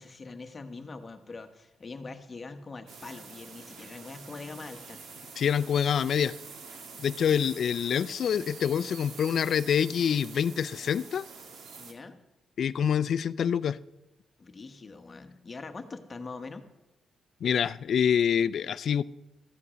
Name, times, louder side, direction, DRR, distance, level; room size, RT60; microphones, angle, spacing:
voice 1, 0.0-5.0 11.8-12.2 14.4-16.6, left 3 dB, 30° left, 7 dB, 1.2 m, -43 dB
sound 1, 2.9-11.9, right 4 dB, 70° right, 2.1 m, -46 dB
voice 2, 5.4-6.3 7.0-11.3 12.6-13.8 17.4-19.0, left 8 dB, 60° left, 17 dB, 0.4 m, -26 dB
14.5 x 9.6 x 6.2 m, 0.95 s
cardioid pair, 125°, 0 cm